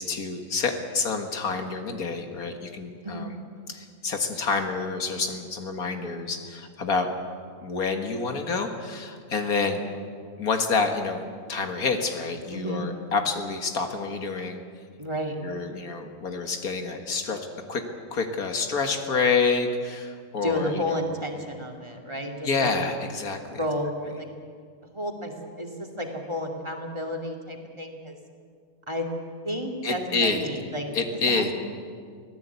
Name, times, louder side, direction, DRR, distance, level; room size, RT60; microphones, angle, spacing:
voice 1, 0.0-3.3 3.7-7.1 7.6-9.8 10.4-14.6 15.4-17.4 17.7-21.0 22.4-23.6 29.8-30.5 30.9-31.5, left 4 dB, 80° left, 5 dB, 2.1 m, -28 dB
voice 2, 12.5-12.9 15.0-15.4 20.4-22.7 23.5-24.3 24.9-28.1 28.9-29.1 29.4-31.5, equal, 20° right, 3 dB, 2.5 m, -32 dB
24.5 x 16.0 x 8.3 m, 2.1 s
omnidirectional pair, 1.5 m